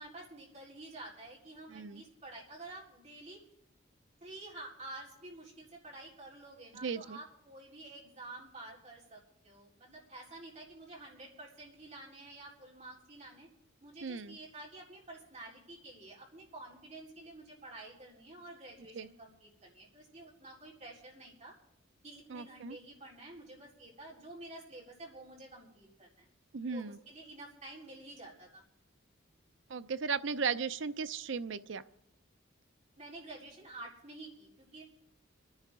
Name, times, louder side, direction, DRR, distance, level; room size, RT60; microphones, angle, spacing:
voice 1, 0.0-3.4 4.2-13.5 13.8-21.5 22.0-26.3 26.7-28.6 33.0-34.8, right 2 dB, 35° right, -4 dB, 4.0 m, -50 dB
voice 2, 1.7-2.0 6.8-7.2 14.0-14.4 18.9-19.1 22.3-22.8 26.5-27.0 29.7-31.8, right 5 dB, 65° right, 13 dB, 0.5 m, -36 dB
26.5 x 10.5 x 3.7 m, 0.81 s
head